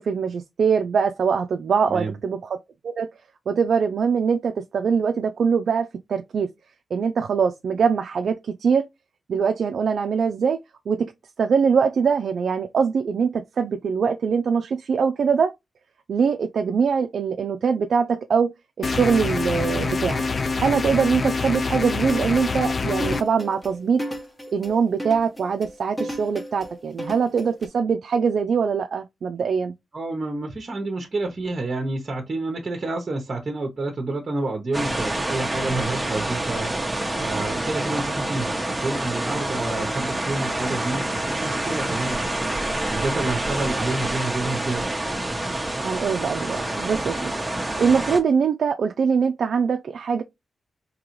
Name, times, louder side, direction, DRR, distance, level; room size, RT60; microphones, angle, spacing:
voice 1, 0.0-2.6 2.8-3.1 3.5-6.5 6.9-8.9 9.3-10.6 10.9-11.1 11.4-15.5 16.1-20.2 20.6-24.0 24.5-29.7 45.8-50.2, right 6 dB, 65° right, 0.4 m, -23 dB
sound 1, 18.8-23.2, left 4 dB, 40° left, 0.3 m, -25 dB
sound 2, 22.1-27.7, equal, 15° left, 1.0 m, -34 dB
voice 2, 29.9-44.9, right 2 dB, 35° right, 0.8 m, -29 dB
sound 3, 34.7-48.2, right 1 dB, 10° right, 0.8 m, -27 dB
3.8 x 2.8 x 3.0 m
cardioid pair, 105°, 0 cm